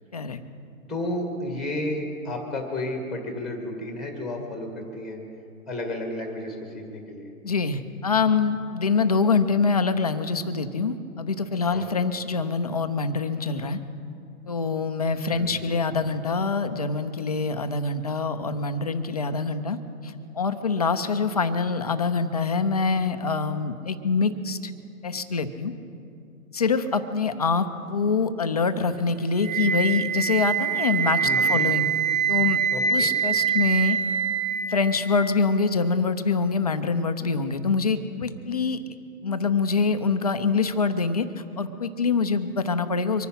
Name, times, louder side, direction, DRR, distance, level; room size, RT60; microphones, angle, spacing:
voice 1, 0.9-5.2 5.7-7.3 11.7-11.9 15.3-15.7 31.2-31.6 32.7-33.1, left 1 dB, ahead, 2 dB, 1.6 m, -32 dB
voice 2, 7.4-13.8 14.5-19.8 20.0-24.7 25.0-25.7 26.5-31.9 32.3-32.6 32.9-34.0 34.7-38.8 39.2-41.3 41.6-43.3, left 4 dB, 30° left, 9 dB, 0.5 m, -25 dB
Wind instrument woodwind instrument, 29.4-35.4, right 7 dB, 80° right, 3.0 m, -25 dB
24.0 x 9.7 x 5.8 m, 2.5 s
hypercardioid pair, 160°, 43 cm